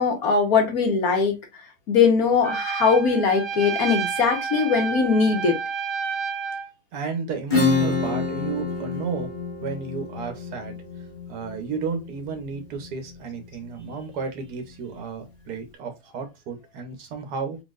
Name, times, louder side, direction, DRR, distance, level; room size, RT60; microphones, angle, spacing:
voice 1, 0.0-1.4 1.9-5.6, left 5 dB, 70° left, 1.7 m, -20 dB
Trumpet, 2.4-6.7, right 6 dB, 45° right, 0.8 m, -30 dB
voice 2, 6.9-9.3 9.6-10.8 11.3-17.6, right 5 dB, 90° right, 1.5 m, -32 dB
Acoustic guitar / Strum, 7.5-12.9, left 4 dB, 35° left, 1.4 m, -27 dB
4.0 x 3.9 x 2.4 m
omnidirectional pair, 1.6 m